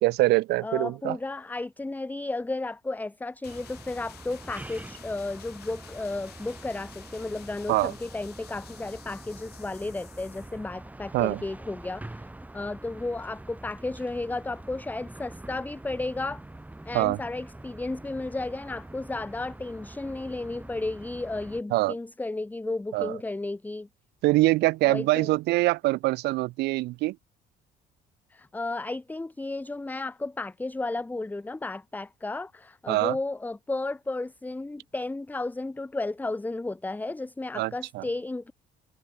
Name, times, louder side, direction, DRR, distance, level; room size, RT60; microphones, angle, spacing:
voice 1, 0.0-1.2 7.7-7.9 11.1-11.4 16.9-17.2 21.7-21.9 22.9-23.2 24.2-27.2 32.9-33.2 37.5-38.0, right 19 dB, 80° right, 0.7 m, -24 dB
voice 2, 0.6-12.3 12.5-16.4 16.8-23.9 24.8-25.3 28.3-38.5, left 2 dB, 10° left, 1.0 m, -33 dB
sound 1, 3.4-10.6, left 14 dB, 75° left, 5.2 m, -52 dB
sound 2, 3.4-21.6, right 2 dB, 10° right, 3.2 m, -45 dB
cardioid pair, 110°, 17 cm